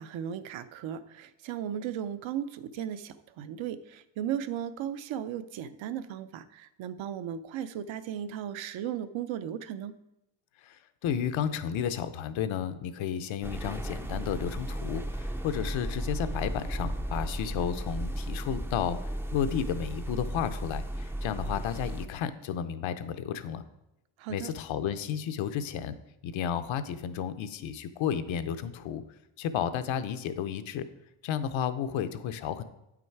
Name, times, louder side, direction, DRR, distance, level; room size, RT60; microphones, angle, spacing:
voice 1, 0.0-9.9 24.2-24.5, right 9 dB, 75° right, 12 dB, 0.7 m, -36 dB
voice 2, 10.6-19.0 19.3-23.6 24.3-25.9 26.2-29.0 29.4-30.8 31.2-32.6, left 8 dB, 80° left, 10 dB, 0.7 m, -32 dB
sound 1, 13.4-22.1, right 1 dB, 5° right, 0.3 m, -35 dB
8.7 x 6.0 x 4.6 m, 0.90 s
cardioid pair, 135°, 47 cm